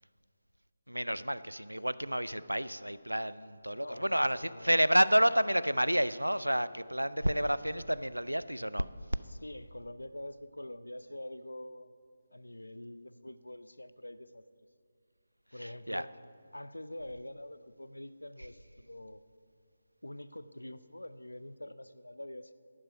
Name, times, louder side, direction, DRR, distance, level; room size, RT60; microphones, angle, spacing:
voice 1, 0.9-8.9 15.6-16.0, equal, 85° right, 16 dB, 0.4 m, -30 dB
voice 2, 3.7-4.8 9.3-11.9 12.3-14.4 15.5-16.1 16.5-19.2 20.0-22.5, left 1 dB, 75° left, 13 dB, 0.5 m, -45 dB
11.0 x 10.0 x 5.2 m, 2.4 s
figure-of-eight pair, 155°, 0 cm